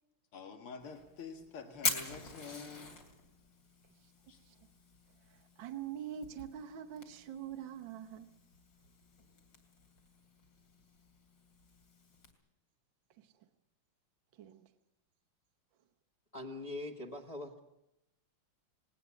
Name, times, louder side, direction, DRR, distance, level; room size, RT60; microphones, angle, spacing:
voice 1, 0.3-3.0 4.3-4.4, left 5 dB, 85° left, 2.7 m, -47 dB
Fire, 0.8-12.3, left 4 dB, 55° left, 3.5 m, -45 dB
voice 2, 5.3-8.3 13.2-13.3 14.4-14.7, right 9 dB, 65° right, 1.6 m, -44 dB
voice 3, 16.3-17.6, left 2 dB, 20° left, 1.4 m, -42 dB
19.5 x 18.5 x 8.3 m
omnidirectional pair, 2.3 m